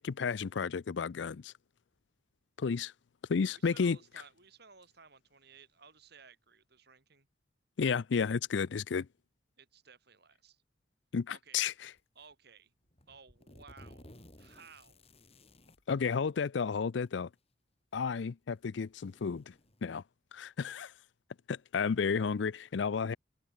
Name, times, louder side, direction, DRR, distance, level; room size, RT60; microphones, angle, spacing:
voice 1, 0.0-1.5 2.6-2.9 3.3-4.0 7.8-9.1 11.1-11.9 15.9-17.3 17.9-19.5 19.8-20.0 20.3-20.9 21.5-23.2, left 5 dB, 75° left, 0.5 m, -32 dB
voice 2, 3.4-7.3 9.6-10.6 11.3-11.6 12.1-12.7 13.1-14.1 14.4-15.0, right 5 dB, 60° right, 6.4 m, -57 dB
sound 1, 12.0-12.3 12.9-15.8 17.0-17.1 17.9-18.0 18.6-20.0, left 1 dB, 35° left, 5.6 m, -57 dB
head